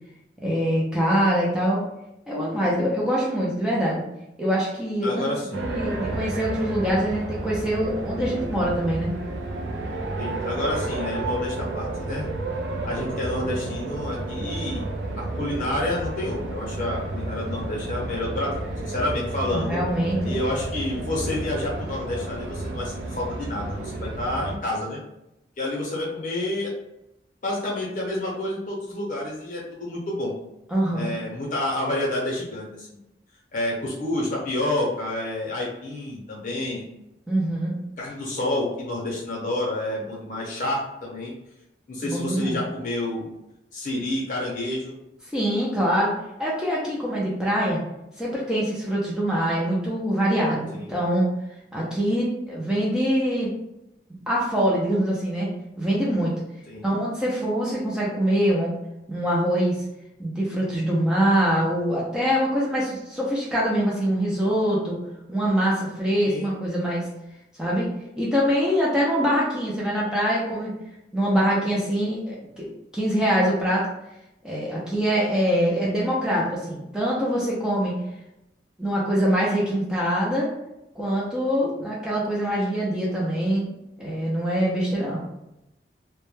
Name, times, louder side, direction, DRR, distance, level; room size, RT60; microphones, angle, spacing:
voice 1, 0.4-1.8 2.3-4.0 4.4-9.1 19.5-20.3 30.7-31.1 37.3-37.7 42.0-42.6 45.3-46.1 46.4-47.8 48.2-51.3 51.7-53.6 54.3-55.5 55.8-56.3 56.8-58.7 59.1-59.8 60.2-65.0 65.3-67.1 67.6-67.9 68.2-70.7 71.1-73.9 74.4-77.9 78.8-80.5 81.0-83.7 84.0-85.2, equal, 5° right, -6 dB, 0.4 m, -24 dB
voice 2, 5.0-5.6 10.2-12.3 12.8-14.8 15.2-18.5 18.8-19.8 20.2-25.0 25.6-26.7 27.4-30.3 30.8-32.9 33.5-36.8 38.0-41.3 41.9-43.3 43.7-44.9 50.7-51.0 56.7-56.9 66.2-66.5, left 1 dB, 50° left, -3 dB, 0.7 m, -29 dB
sound 1, 5.5-24.6, right 2 dB, 85° right, 0.3 m, -31 dB
2.1 x 2.1 x 3.1 m, 0.87 s
head